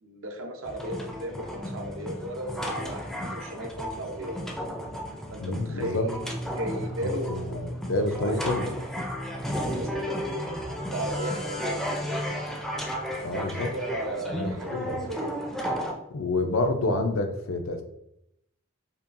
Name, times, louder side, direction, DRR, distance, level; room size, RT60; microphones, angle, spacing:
voice 1, 0.0-4.4 5.3-8.8 9.6-12.1 13.3-15.3, right 1 dB, 70° right, 3 dB, 0.7 m, -36 dB
sound 1, 0.7-15.9, equal, ahead, 0.4 m, -33 dB
voice 2, 5.4-6.1 6.8-8.7 13.2-13.7 14.3-15.0 16.1-17.8, left 2 dB, 80° left, 6 dB, 0.5 m, -28 dB
5.4 x 2.3 x 2.5 m, 0.80 s
head